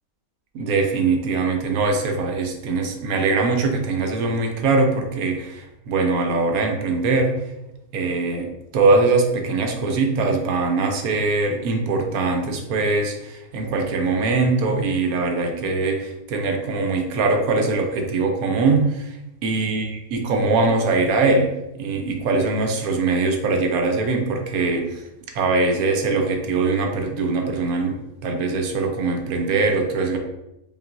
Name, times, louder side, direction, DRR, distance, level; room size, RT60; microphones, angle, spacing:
voice 1, 0.5-7.4 7.9-19.2 19.4-25.0 25.3-30.2, right 3 dB, 85° right, 3 dB, 1.1 m, -22 dB
5.2 x 2.5 x 2.5 m, 0.92 s
omnidirectional pair, 1.5 m